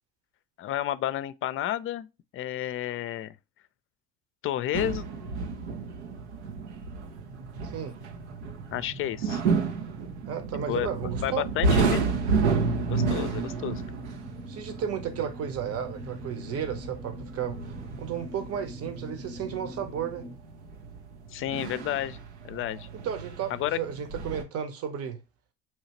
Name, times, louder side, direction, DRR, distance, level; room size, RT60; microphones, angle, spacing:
voice 1, 0.6-2.1 2.3-3.3 4.4-5.0 8.7-9.4 10.7-10.9 11.2-12.0 12.9-13.8 21.3-22.9 23.5-23.8, left 12 dB, 40° left, 0.5 m, -31 dB
sound 1, 4.7-24.4, right 4 dB, 90° right, 0.7 m, -31 dB
sound 2, 7.2-20.4, right 1 dB, 25° right, 0.9 m, -44 dB
voice 2, 7.6-8.0 10.3-11.7 12.0-12.1 14.5-20.3 22.9-25.2, right 8 dB, 45° right, 1.0 m, -34 dB
5.7 x 2.7 x 3.0 m
hypercardioid pair, 70°, 33 cm